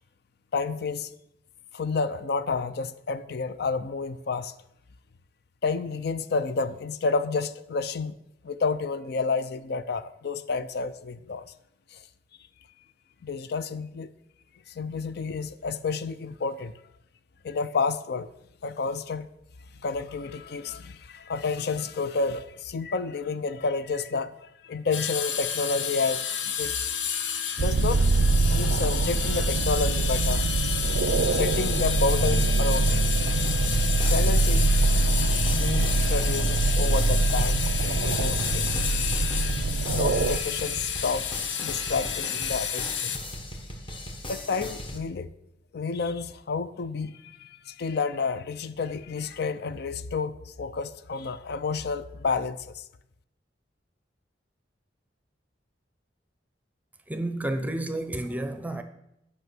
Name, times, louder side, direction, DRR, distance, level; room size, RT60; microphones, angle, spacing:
voice 1, 0.5-1.1 1.7-4.5 5.6-8.1 8.4-11.5 11.9-12.0 13.2-14.1 14.7-16.7 17.4-18.3 18.6-19.3 19.8-26.8 27.6-28.1 28.5-30.5 31.3-33.0 34.0-34.7 35.5-38.9 39.9-41.3 41.6-43.2 44.3-45.3 45.7-52.8, left 4 dB, 60° left, 0.5 m, -30 dB
sound 1, 24.9-43.2, left 8 dB, 85° left, 0.9 m, -31 dB
sound 2, 27.6-40.4, right 3 dB, 85° right, 0.5 m, -24 dB
sound 3, 33.3-45.0, left 1 dB, 30° left, 1.3 m, -39 dB
voice 2, 57.1-58.8, right 1 dB, 10° right, 0.7 m, -30 dB
9.6 x 5.5 x 6.0 m
head